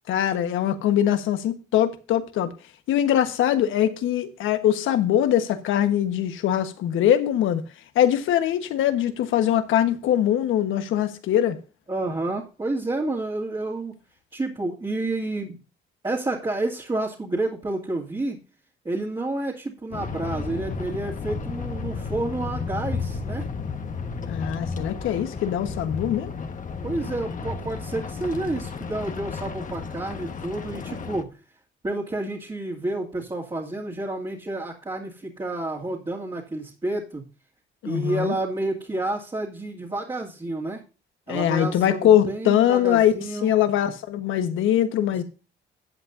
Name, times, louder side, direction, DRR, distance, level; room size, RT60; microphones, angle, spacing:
voice 1, 0.1-2.5 2.9-7.6 7.9-11.6 24.3-26.3 37.8-38.3 41.3-43.1 43.4-45.2, left 10 dB, 85° left, 1.3 m, -22 dB
voice 2, 11.9-14.0 14.3-15.6 16.0-18.4 18.8-23.5 26.8-31.3 31.8-37.2 37.8-40.8 41.3-43.5, right 2 dB, 25° right, 2.5 m, -29 dB
sound 1, 19.9-31.2, left 5 dB, 40° left, 1.3 m, -33 dB
14.0 x 8.2 x 2.7 m
cardioid pair, 90°, 20 cm